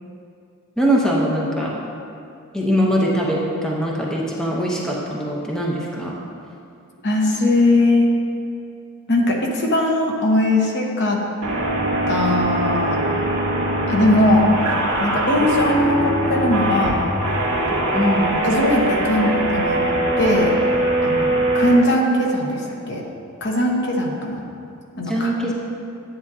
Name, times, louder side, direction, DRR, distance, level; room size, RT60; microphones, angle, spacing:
voice 1, 0.8-1.8 2.5-6.1 17.9-18.4 25.0-25.5, equal, 5° left, -4 dB, 0.8 m, -22 dB
voice 2, 7.0-8.1 9.1-11.2 12.1-13.0 13.9-14.5 15.0-17.0 18.4-19.8 20.2-20.5 21.0-23.0 23.4-24.4 25.0-25.3, left 1 dB, 55° left, -1 dB, 1.0 m, -19 dB
sound 1, 11.4-21.7, right 1 dB, 75° right, 1.9 m, -21 dB
9.9 x 8.4 x 2.7 m, 2.5 s
head